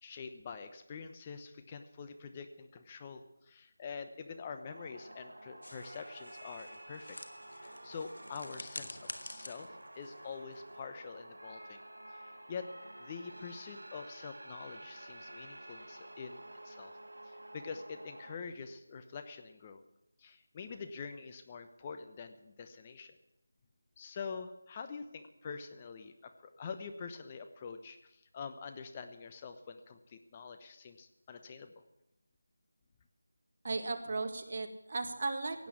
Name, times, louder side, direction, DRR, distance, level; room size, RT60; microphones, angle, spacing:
voice 1, 0.0-7.2 7.5-11.8 12.1-12.7 13.0-17.0 17.2-19.8 20.2-23.2 24.0-31.8, left 5 dB, 20° left, 7 dB, 0.9 m, -46 dB
sound 1, 4.6-18.4, right 1 dB, 85° right, 1.3 m, -51 dB
sound 2, 5.6-10.9, left 1 dB, 90° left, 1.7 m, -49 dB
voice 2, 33.6-35.7, right 3 dB, 45° right, 6 dB, 1.6 m, -36 dB
16.5 x 8.5 x 8.4 m, 0.85 s
figure-of-eight pair, 170°, 0 cm